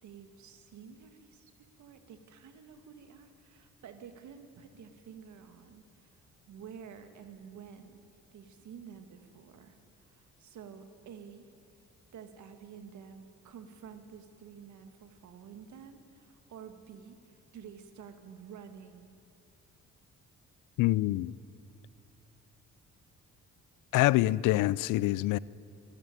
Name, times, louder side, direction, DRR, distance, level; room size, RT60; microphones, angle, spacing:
voice 1, 0.0-6.2 6.5-8.0 8.3-11.5 12.1-19.1, right 7 dB, 70° right, 2.2 m, -50 dB
voice 2, 20.8-21.3 23.9-25.4, left 17 dB, 90° left, 0.5 m, -25 dB
25.0 x 12.5 x 9.2 m
cardioid pair, 90°, 30 cm